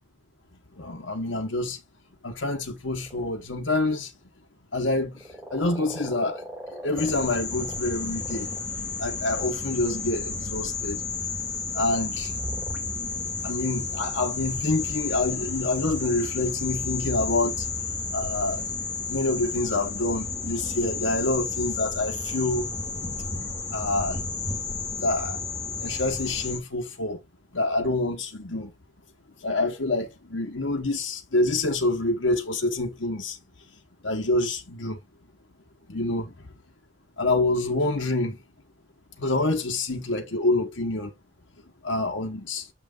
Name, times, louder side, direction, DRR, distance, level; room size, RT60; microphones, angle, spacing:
voice 1, 0.8-1.8 2.2-4.1 4.7-6.5 6.7-8.5 9.0-11.0 11.7-12.4 13.4-17.7 18.1-18.7 19.1-22.7 23.7-24.2 25.0-25.4 25.7-27.2 27.5-28.7 29.4-33.4 34.0-35.0 35.9-36.3 37.2-38.4 39.2-41.1 41.8-42.7, left 2 dB, 80° left, 1.2 m, -27 dB
sound 1, 3.0-3.3 5.1-9.5 11.6-12.8 13.8-14.1, right 1 dB, 5° right, 2.5 m, -41 dB
sound 2, 7.0-26.6, left 4 dB, 20° left, 2.6 m, -32 dB
7.8 x 5.9 x 2.5 m
head